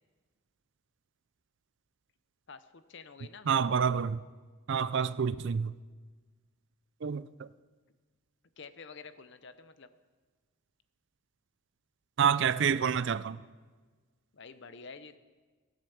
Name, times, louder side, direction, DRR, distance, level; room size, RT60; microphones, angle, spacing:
voice 1, 2.5-3.5 8.6-9.9 14.3-15.2, left 4 dB, 55° left, 11 dB, 0.7 m, -49 dB
voice 2, 3.5-4.2 4.7-5.7 7.0-7.5 12.2-13.4, right 7 dB, 55° right, 17 dB, 0.4 m, -28 dB
15.5 x 8.9 x 7.1 m, 1.4 s
head